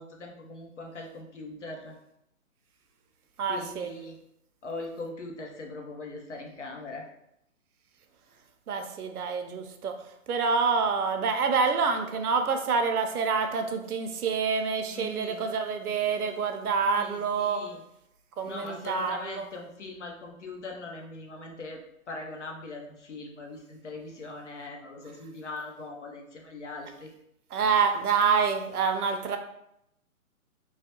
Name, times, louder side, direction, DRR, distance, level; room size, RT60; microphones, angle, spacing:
voice 1, 0.0-2.0 3.5-4.2 4.6-7.0 14.9-15.4 16.9-17.8 18.4-21.8 22.1-27.1, left 3 dB, 55° left, 1 dB, 0.6 m, -41 dB
voice 2, 3.4-3.9 8.7-10.0 10.3-17.6 18.4-19.5 27.5-29.4, right 5 dB, 85° right, 6 dB, 0.7 m, -27 dB
3.1 x 2.4 x 2.9 m, 0.79 s
hypercardioid pair, 180°, 44 cm